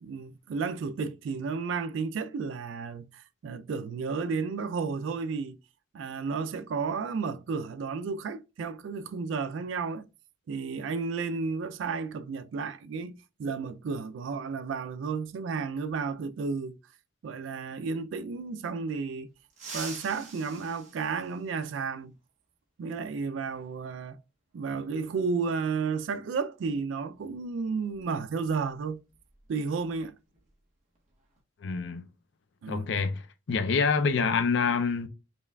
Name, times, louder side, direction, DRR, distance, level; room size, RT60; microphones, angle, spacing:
voice 1, 0.0-5.6 5.9-10.1 10.5-16.8 17.2-19.3 19.7-22.1 22.8-24.2 24.5-29.0 29.5-30.2 32.6-32.9 34.6-34.7, right 5 dB, 75° right, 0.3 m, -32 dB
sound 1, 19.5-21.9 23.6-23.7 24.9-25.0 26.6-26.8 27.1-27.4 27.8-30.0 30.3-30.5 31.0-31.4, right 4 dB, 40° right, 1.0 m, -45 dB
voice 2, 31.6-32.0 32.7-33.2 33.5-35.1, left 5 dB, 65° left, 0.4 m, -26 dB
5.2 x 2.3 x 2.2 m
head